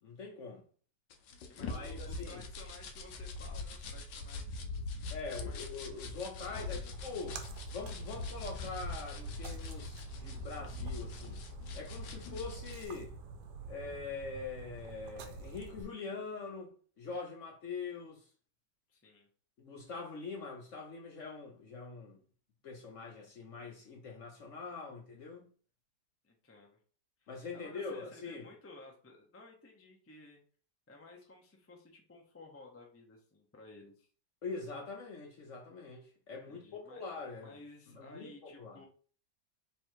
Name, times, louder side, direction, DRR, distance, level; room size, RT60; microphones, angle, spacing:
voice 1, 0.0-0.6 1.6-2.4 5.1-7.4 7.7-11.4 11.7-13.1 13.7-18.3 19.6-22.2 22.6-25.5 27.3-28.5 34.4-37.5 37.9-38.8, left 4 dB, 55° left, 1.0 m, -43 dB
sound 1, 1.1-12.8, left 3 dB, 85° left, 1.4 m, -42 dB
voice 2, 1.5-5.6 6.4-6.9 18.9-19.3 26.2-26.8 27.2-30.4 30.9-34.1 36.5-37.0 37.4-38.8, left 2 dB, 15° left, 0.5 m, -55 dB
Splash splatter, 6.9-15.8, right 3 dB, 75° right, 1.2 m, -48 dB
3.4 x 3.3 x 4.6 m
omnidirectional pair, 1.8 m